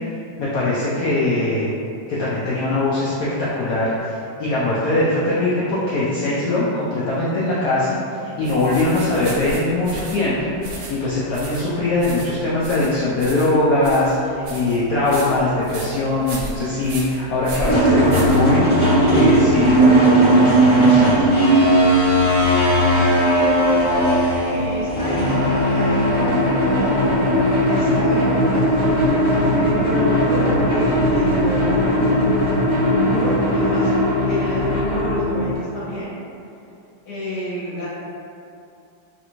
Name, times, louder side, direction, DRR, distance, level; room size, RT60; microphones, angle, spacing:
voice 1, 0.4-1.7 2.1-18.6 19.1-21.3, left 2 dB, 80° left, -8 dB, 0.8 m, -21 dB
sound 1, 8.4-18.9, right 1 dB, 85° right, 1.4 m, -35 dB
sound 2, 17.6-35.5, equal, 35° left, 1.1 m, -17 dB
voice 2, 23.2-28.7 29.4-31.9 33.0-36.1 37.1-37.9, equal, 60° left, -10 dB, 1.4 m, -29 dB
3.2 x 2.5 x 2.9 m, 2.6 s
omnidirectional pair, 2.1 m